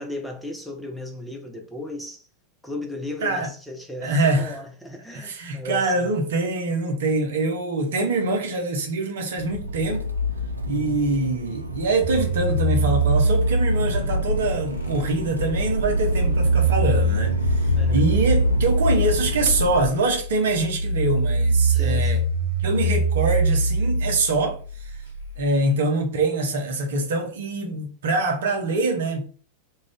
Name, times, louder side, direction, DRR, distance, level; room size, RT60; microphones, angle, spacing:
voice 1, 0.0-2.3 2.6-6.1 16.2-16.5 17.7-18.1 21.7-22.2, left 1 dB, ahead, 0.7 m, -36 dB
voice 2, 4.0-4.6 5.1-10.1 10.7-22.2 22.6-24.9 25.4-29.3, right 2 dB, 60° right, 0.8 m, -24 dB
Accelerating revving vroom, 9.4-19.9, left 1 dB, 80° right, 0.4 m, -28 dB
sound 1, 12.0-25.7, right 2 dB, 70° left, 0.7 m, -24 dB
2.4 x 2.3 x 3.4 m
figure-of-eight pair, 90°, 0 cm